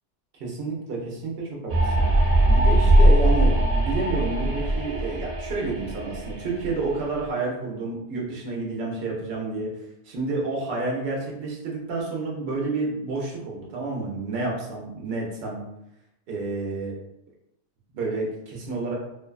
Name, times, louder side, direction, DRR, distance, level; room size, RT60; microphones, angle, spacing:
voice 1, 0.3-2.1 2.5-9.7 10.0-15.6 16.3-16.9 17.9-19.0, right 3 dB, 60° right, -2 dB, 0.8 m, -30 dB
sound 1, 1.7-7.2, right 1 dB, 90° right, 0.9 m, -20 dB
2.5 x 2.2 x 2.3 m, 0.85 s
omnidirectional pair, 1.2 m